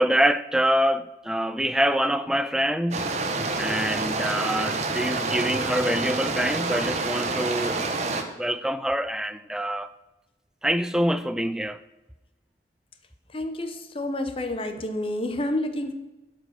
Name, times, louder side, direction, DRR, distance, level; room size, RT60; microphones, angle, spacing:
voice 1, 0.0-3.1 3.6-7.9 8.2-9.9 10.6-11.8, equal, 5° right, 0.3 m, -25 dB
sound 1, 2.9-8.2, right 3 dB, 40° right, 0.9 m, -28 dB
voice 2, 13.3-15.9, left 1 dB, 30° left, 0.9 m, -29 dB
12.0 x 5.1 x 6.4 m
head